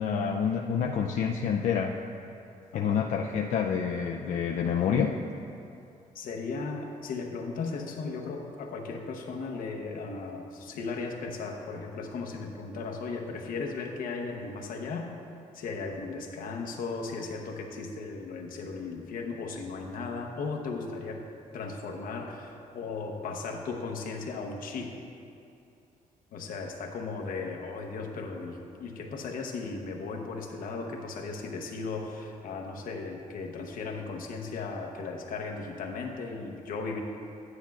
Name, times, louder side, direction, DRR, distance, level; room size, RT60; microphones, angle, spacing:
voice 1, 0.0-1.9 2.7-5.2, left 7 dB, 60° left, 1 dB, 0.4 m, -28 dB
voice 2, 2.7-3.0 6.1-15.1 15.5-21.3 21.5-24.9 26.3-37.0, left 4 dB, 75° left, 2 dB, 0.8 m, -36 dB
10.0 x 9.5 x 2.3 m, 2.6 s
wide cardioid pair, 160°, 14 cm